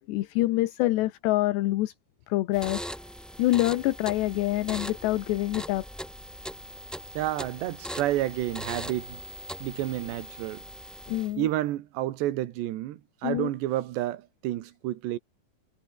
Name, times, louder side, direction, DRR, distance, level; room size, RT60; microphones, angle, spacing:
voice 1, 0.1-1.9 2.3-2.8 3.4-5.9 11.1-11.5 13.2-13.5, left 17 dB, 80° left, 3.2 m, -26 dB
sound 1, 2.5-11.5, equal, ahead, 4.5 m, -40 dB
voice 2, 7.2-9.2 9.6-10.6 11.4-15.2, right 14 dB, 80° right, 3.5 m, -30 dB
omnidirectional pair, 5.0 m